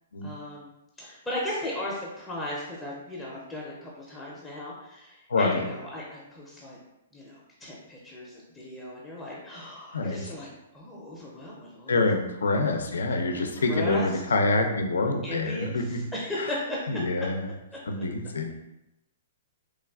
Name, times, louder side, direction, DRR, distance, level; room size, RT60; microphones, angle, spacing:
voice 1, 0.2-0.7 1.0-6.8 7.1-10.5 10.7-12.1 13.3-14.1 15.2-17.0 18.0-18.1, left 1 dB, 10° left, -5 dB, 0.5 m, -36 dB
voice 2, 5.3-5.6 9.9-10.2 11.9-16.0 16.4-16.5 16.9-17.5 17.9-18.5, left 2 dB, 85° left, 4 dB, 0.4 m, -26 dB
3.1 x 2.3 x 2.3 m, 0.90 s
hypercardioid pair, 130°, 0 cm